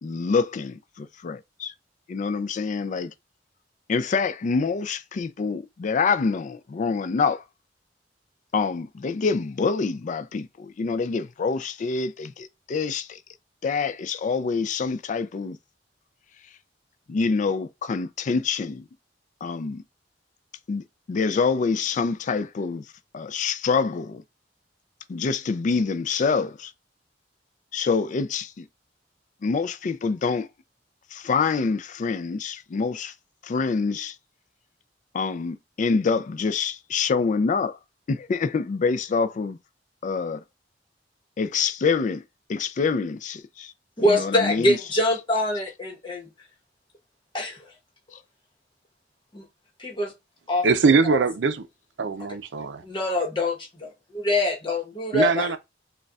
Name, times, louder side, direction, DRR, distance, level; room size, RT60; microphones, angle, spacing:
voice 1, 0.0-1.7 2.1-3.1 3.9-7.4 8.5-13.2 13.6-15.6 17.1-18.9 19.4-19.8 20.7-22.8 23.1-24.2 25.1-26.7 27.7-28.6 29.4-30.5 31.1-33.1 33.4-34.1 35.1-37.8 38.1-39.6 40.0-40.4 41.4-42.2 42.5-43.7 44.0-44.8, left 4 dB, 45° left, 0.3 m, -26 dB
voice 2, 44.0-46.3 47.3-47.7 49.3-49.5 49.8-50.1 50.5-50.7 51.0-51.2 52.2-52.3 52.8-55.5, left 1 dB, 30° left, 1.0 m, -24 dB
voice 3, 50.6-51.6 52.0-52.8 55.1-55.6, right 4 dB, 90° right, 0.5 m, -21 dB
6.4 x 2.3 x 2.3 m
head